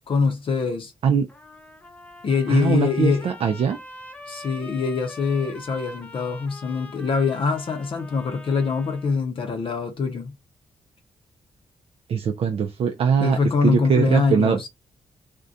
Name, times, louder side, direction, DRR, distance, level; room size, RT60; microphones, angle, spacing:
voice 1, 0.1-0.9 2.2-3.3 4.3-10.3 13.2-14.7, left 5 dB, 55° left, 0.6 m, -24 dB
Trumpet, 1.3-9.2, left 2 dB, 10° left, 0.6 m, -43 dB
voice 2, 2.5-3.8 12.1-13.4 13.6-14.6, right 7 dB, 60° right, 0.4 m, -21 dB
2.4 x 2.1 x 2.6 m
cardioid pair, 85°, 11 cm